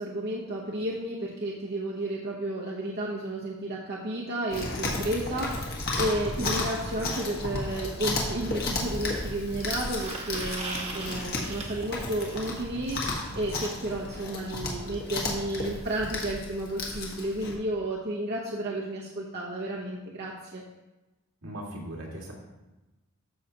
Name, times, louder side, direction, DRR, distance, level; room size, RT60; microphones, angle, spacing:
voice 1, 0.0-20.6, right 1 dB, 50° right, -4 dB, 0.9 m, -32 dB
Chewing mastication, 4.5-17.5, left 2 dB, 45° left, 1.4 m, -33 dB
sound 1, 8.8-12.6 14.5-14.6 14.9-15.0 15.3-15.4 16.3-16.4, right 3 dB, 30° right, 1.2 m, -40 dB
voice 2, 21.4-22.3, right 1 dB, 75° right, -2 dB, 2.1 m, -38 dB
13.0 x 5.7 x 2.9 m, 1.0 s
head